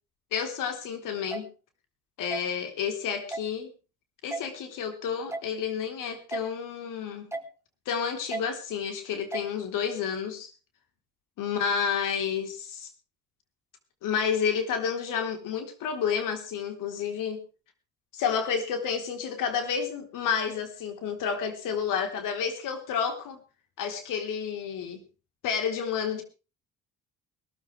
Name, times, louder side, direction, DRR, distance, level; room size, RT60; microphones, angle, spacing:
voice 1, 0.3-1.5 2.2-3.7 4.2-7.3 7.9-10.5 11.4-12.9 14.0-17.4 18.1-23.4 23.8-25.0 25.4-26.2, left 7 dB, 80° left, 6 dB, 3.8 m, -30 dB
sound 1, 1.3-1.4 2.3-2.4 3.3-3.5 4.3-4.4 5.3-5.5 6.3-6.4 7.3-7.5 8.3-8.4 9.3-9.5, right 2 dB, 10° right, 2.3 m, -33 dB
21.0 x 14.0 x 3.3 m, 0.34 s
supercardioid pair, 75°, 31 cm